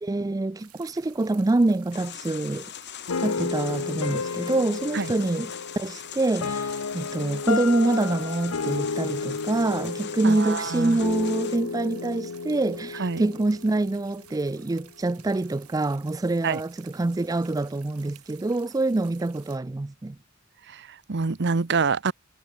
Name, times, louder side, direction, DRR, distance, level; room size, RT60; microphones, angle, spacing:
voice 1, 0.0-2.7 3.2-20.2, right 2 dB, 15° right, 0.3 m, -26 dB
sound 1, 0.6-19.6, right 12 dB, 90° right, 7.5 m, -53 dB
sound 2, 1.9-11.6, left 10 dB, 50° left, 1.6 m, -41 dB
sound 3, 3.1-14.2, left 4 dB, 75° left, 0.8 m, -32 dB
voice 2, 10.2-11.0 13.0-13.2 16.4-16.6 20.7-22.1, right 4 dB, 50° right, 0.8 m, -26 dB
head